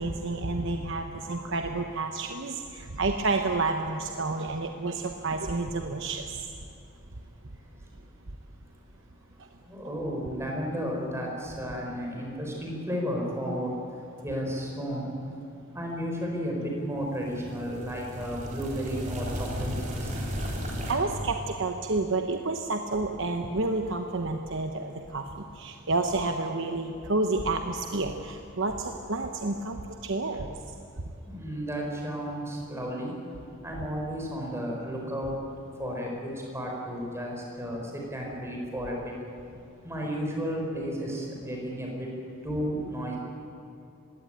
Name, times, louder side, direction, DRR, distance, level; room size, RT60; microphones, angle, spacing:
voice 1, 0.0-6.5 9.4-9.5 20.9-30.7, right 3 dB, 60° right, 4 dB, 1.0 m, -30 dB
voice 2, 9.7-13.7 14.2-15.1 15.7-19.7 20.0-20.1 31.2-33.1 33.6-35.3 35.8-39.1 39.8-42.1 42.4-43.2, equal, 10° right, -1 dB, 4.9 m, -33 dB
sound 1, 17.1-20.9, equal, 35° right, 3.9 m, -34 dB
20.5 x 17.5 x 9.0 m, 2.7 s
head